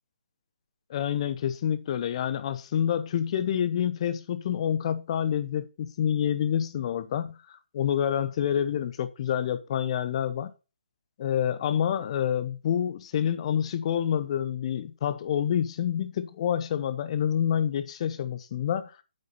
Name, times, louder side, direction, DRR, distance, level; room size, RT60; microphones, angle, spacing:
voice 1, 0.9-7.4 7.7-10.5 11.2-18.9, left 9 dB, 35° left, 0.8 m, -27 dB
8.6 x 6.5 x 4.0 m
figure-of-eight pair, 145°, 6 cm